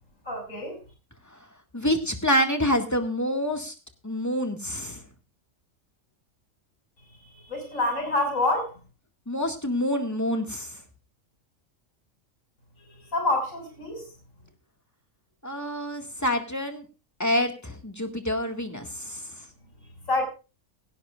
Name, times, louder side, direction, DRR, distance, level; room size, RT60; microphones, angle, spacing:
voice 1, 0.2-0.8 7.2-8.7 12.8-14.1 20.1-20.3, left 2 dB, 90° left, 3 dB, 6.5 m, -27 dB
voice 2, 1.7-3.7 4.0-5.0 9.3-10.8 15.4-16.9 17.2-19.3, equal, 15° left, 4 dB, 2.0 m, -27 dB
17.5 x 16.5 x 2.5 m, 0.32 s
omnidirectional pair, 1.3 m